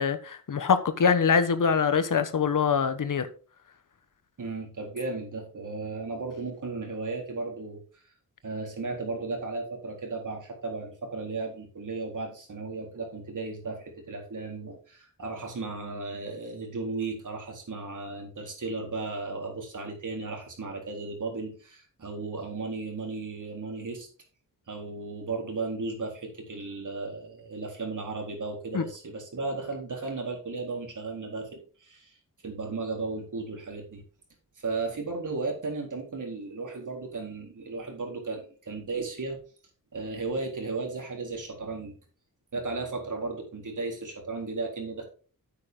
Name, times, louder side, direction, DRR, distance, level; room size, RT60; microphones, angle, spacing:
voice 1, 0.0-3.3 28.7-28.8, left 6 dB, 60° left, 1.2 m, -24 dB
voice 2, 4.4-7.8 8.4-24.1 24.7-32.2 32.4-34.0 34.6-39.4 39.9-41.9 42.5-45.0, right 3 dB, 60° right, 4.1 m, -35 dB
9.3 x 8.6 x 3.8 m
wide cardioid pair, 95°, 35 cm